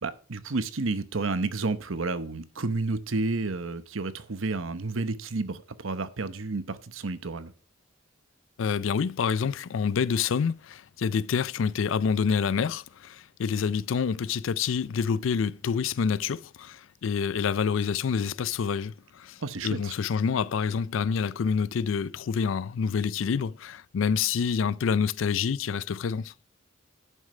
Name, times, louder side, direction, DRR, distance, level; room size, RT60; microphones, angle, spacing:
voice 1, 0.0-7.5 19.4-19.9, right 3 dB, 85° right, 0.9 m, -31 dB
voice 2, 8.6-26.3, left 6 dB, 75° left, 0.4 m, -27 dB
11.0 x 6.5 x 4.9 m
head